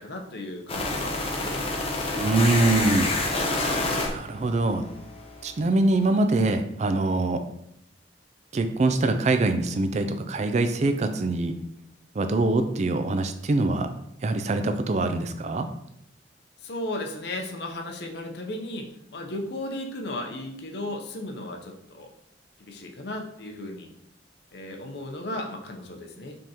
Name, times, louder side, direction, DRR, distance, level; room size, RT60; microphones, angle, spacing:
voice 1, 0.0-1.7 9.0-9.1 16.6-22.1 22.6-23.9 24.5-26.4, left 1 dB, 65° left, 3 dB, 0.7 m, -35 dB
sound 1, 0.7-5.5, left 2 dB, 30° left, 0.7 m, -28 dB
voice 2, 2.1-3.1 4.1-4.8 5.4-7.4 8.5-11.5 12.2-13.9 14.2-15.7, right 2 dB, 40° right, 8 dB, 0.4 m, -24 dB
5.2 x 3.5 x 2.9 m, 0.78 s
head